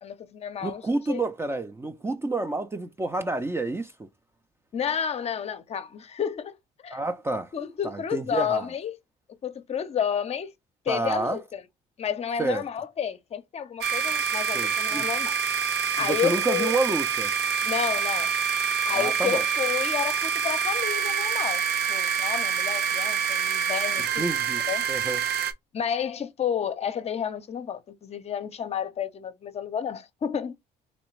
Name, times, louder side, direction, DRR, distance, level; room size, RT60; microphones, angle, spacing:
voice 1, 0.0-1.2 4.7-6.6 6.8-7.0 7.5-9.0 9.4-10.5 10.9-11.6 12.0-15.3 15.9-16.7 17.6-18.3 18.8-24.3 24.7-24.8 25.7-30.7, left 8 dB, 40° left, 0.6 m, -31 dB
voice 2, 0.6-4.1 6.9-7.5 7.8-8.7 10.9-11.4 12.4-12.6 14.5-15.1 16.0-17.3 18.9-19.4 24.2-24.6 24.9-25.2, right 3 dB, 15° right, 0.4 m, -29 dB
sound 1, 13.8-25.5, right 7 dB, 80° right, 0.6 m, -26 dB
3.3 x 3.1 x 3.1 m
cardioid pair, 110°, 17 cm